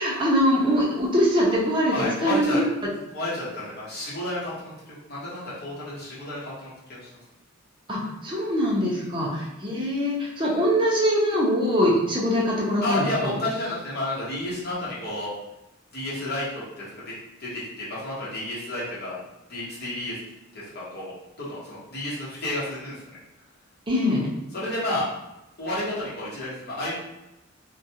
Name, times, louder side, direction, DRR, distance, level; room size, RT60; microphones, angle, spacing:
voice 1, 0.0-2.6 7.9-13.4 23.9-24.3, equal, 25° right, -4 dB, 0.6 m, -23 dB
voice 2, 1.9-2.6 3.1-7.1 8.9-9.1 12.8-15.3 15.9-16.6 17.4-19.2 19.5-20.2 20.5-21.1 21.4-23.0 24.0-24.1 24.5-25.0 25.6-27.0, left 1 dB, 50° left, -9 dB, 1.1 m, -31 dB
2.4 x 2.2 x 2.8 m, 0.95 s
head